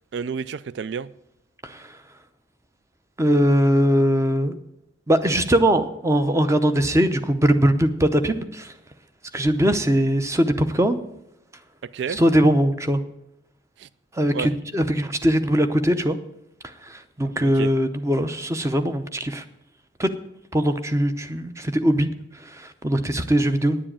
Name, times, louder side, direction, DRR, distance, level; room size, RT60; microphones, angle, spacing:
voice 1, 0.1-1.1 11.8-12.2 13.8-13.9 14.3-14.5 17.2-17.7, right 6 dB, 65° right, 0.3 m, -30 dB
voice 2, 1.6-2.0 3.2-4.6 5.1-8.7 9.3-11.0 12.2-13.0 14.1-16.2 16.8-19.4 20.0-20.1 20.5-22.1 22.4-23.8, equal, 15° right, 0.7 m, -21 dB
10.0 x 7.5 x 8.7 m
head